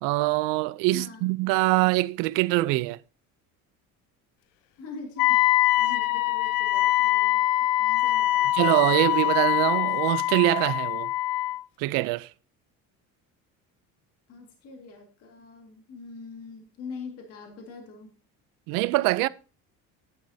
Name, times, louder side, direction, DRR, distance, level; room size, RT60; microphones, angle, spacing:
voice 1, 0.0-3.0 8.5-11.1 11.8-12.3 18.7-19.3, right 19 dB, 85° right, 0.6 m, -24 dB
voice 2, 0.9-1.3 4.8-8.6 14.3-18.1, left 4 dB, 45° left, 2.1 m, -43 dB
Wind instrument woodwind instrument, 5.2-11.6, left 15 dB, 85° left, 0.6 m, -23 dB
12.0 x 10.5 x 2.8 m
cardioid pair, 175°, 32 cm